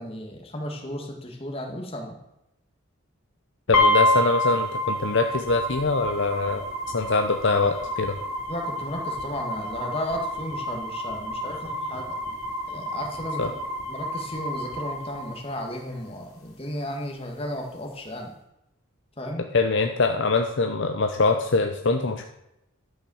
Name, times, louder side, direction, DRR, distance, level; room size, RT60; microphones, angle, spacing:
voice 1, 0.0-2.2 8.5-12.2 12.7-13.6 13.9-18.3 19.2-19.5, left 1 dB, 25° left, 1 dB, 1.9 m, -34 dB
sound 1, 3.7-15.7, left 1 dB, 75° left, 3.0 m, -28 dB
voice 2, 3.7-8.2 13.4-13.5 19.5-22.3, left 3 dB, 55° left, 5 dB, 0.7 m, -23 dB
12.0 x 5.6 x 7.1 m, 0.86 s
head